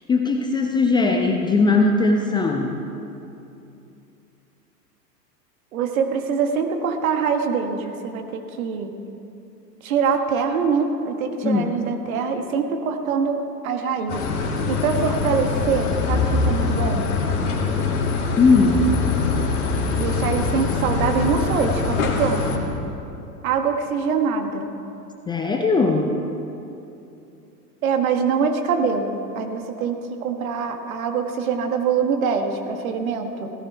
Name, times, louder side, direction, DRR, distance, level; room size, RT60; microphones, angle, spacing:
voice 1, 0.1-2.8 11.4-11.7 18.4-18.9 25.3-26.2, left 3 dB, 10° left, 2 dB, 0.5 m, -19 dB
voice 2, 5.7-8.9 9.8-14.3 14.7-17.0 20.0-22.7 23.4-24.7 27.8-33.5, right 5 dB, 55° right, 5 dB, 1.7 m, -24 dB
sound 1, 14.1-22.6, left 4 dB, 65° left, 2.7 m, -23 dB
17.0 x 15.0 x 4.5 m, 2.8 s
figure-of-eight pair, 100°, 49 cm